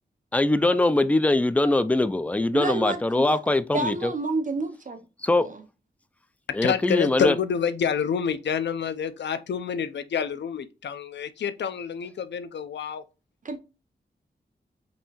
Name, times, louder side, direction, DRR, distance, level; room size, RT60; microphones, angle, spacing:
voice 1, 0.3-4.1 5.2-5.5 6.5-7.4, left 2 dB, 10° left, 0.3 m, -22 dB
voice 2, 2.5-3.4 3.7-5.0 5.4-5.6 13.4-13.6, right 3 dB, 45° right, 0.6 m, -29 dB
voice 3, 6.6-13.0, left 7 dB, 80° left, 0.5 m, -28 dB
5.3 x 2.7 x 2.9 m
cardioid pair, 70°, 18 cm